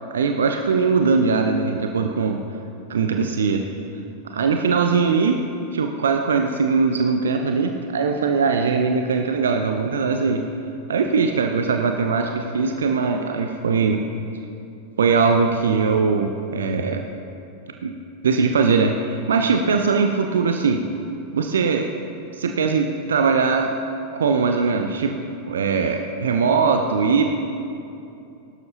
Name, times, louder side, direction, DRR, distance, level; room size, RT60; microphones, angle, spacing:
voice 1, 0.1-2.4 2.9-3.6 4.2-5.4 5.7-10.4 10.9-14.0 15.0-17.1 17.8-17.9 18.2-20.8 21.3-21.9 22.3-23.7 24.1-25.2 25.5-27.3, right 5 dB, 65° right, 4 dB, 0.7 m, -20 dB
21.5 x 12.0 x 2.9 m, 2.7 s
figure-of-eight pair, 90°, 0 cm